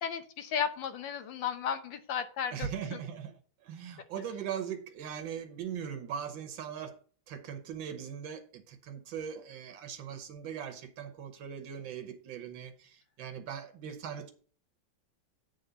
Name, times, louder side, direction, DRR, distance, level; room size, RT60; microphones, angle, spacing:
voice 1, 0.0-3.0, left 7 dB, 75° left, 1.5 m, -34 dB
voice 2, 2.5-3.3 3.6-7.0 7.3-14.3, right 8 dB, 80° right, 1.6 m, -40 dB
8.4 x 3.8 x 6.8 m
omnidirectional pair, 2.1 m